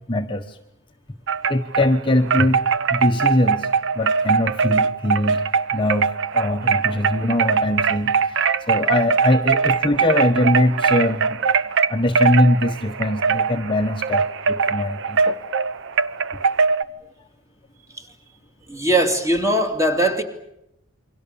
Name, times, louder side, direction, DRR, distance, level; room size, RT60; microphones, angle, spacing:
voice 1, 0.1-0.6 1.5-3.7 3.9-5.5 5.7-15.4, left 1 dB, 20° left, 1.1 m, -22 dB
Wind chime, 1.3-1.9 2.3-16.8, right 5 dB, 55° right, 0.9 m, -21 dB
voice 2, 18.7-20.2, right 1 dB, 15° right, 2.9 m, -20 dB
28.5 x 24.0 x 7.1 m
head